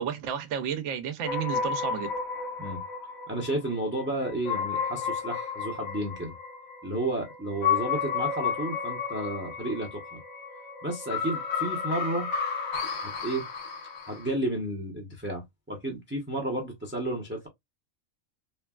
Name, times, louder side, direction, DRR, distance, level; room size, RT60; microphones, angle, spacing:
voice 1, 0.0-2.1, right 8 dB, 70° right, 0.9 m, -31 dB
sound 1, 1.2-14.3, left 6 dB, 90° left, 1.3 m, -32 dB
voice 2, 3.3-6.3 6.8-10.2 10.8-12.3 13.0-13.4 14.0-17.5, right 1 dB, 15° right, 0.5 m, -32 dB
3.2 x 2.2 x 2.2 m
omnidirectional pair, 1.4 m